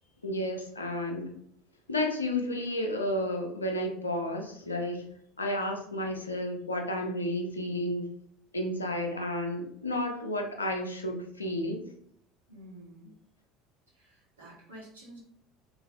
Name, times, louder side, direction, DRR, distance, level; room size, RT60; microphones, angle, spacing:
voice 1, 0.2-1.3 1.9-5.0 5.4-8.1 8.5-11.8, left 1 dB, 85° left, 3 dB, 0.5 m, -32 dB
voice 2, 8.6-8.9 12.5-13.1 13.9-15.2, equal, 80° right, -6 dB, 1.2 m, -50 dB
3.9 x 2.8 x 2.5 m, 0.68 s
figure-of-eight pair, 65°, 0 cm